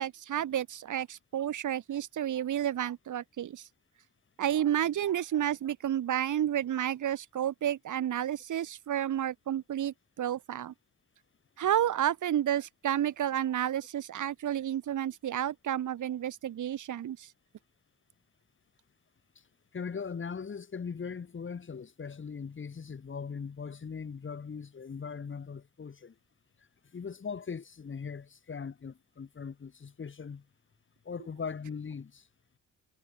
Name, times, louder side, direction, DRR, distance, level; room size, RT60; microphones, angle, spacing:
voice 1, 0.0-3.6 4.4-10.7 11.6-17.3, right 11 dB, 90° right, 2.8 m, -31 dB
voice 2, 19.7-26.1 26.9-30.4 31.1-32.2, left 6 dB, 40° left, 2.1 m, -40 dB
cardioid pair, 100°, 30 cm